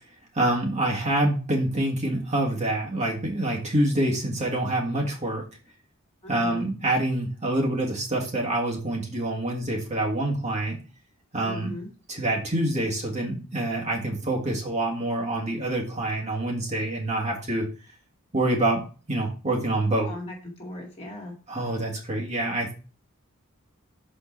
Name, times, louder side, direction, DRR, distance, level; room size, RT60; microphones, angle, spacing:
voice 1, 0.3-5.4 6.3-10.8 11.3-11.7 12.1-17.7 18.3-18.8 19.1-20.1 21.5-22.7, right 1 dB, 30° right, -1 dB, 1.6 m, -26 dB
voice 2, 6.2-6.7 11.4-11.9 20.1-21.4, left 1 dB, 30° left, -1 dB, 2.1 m, -38 dB
6.7 x 4.5 x 4.4 m, 0.35 s
head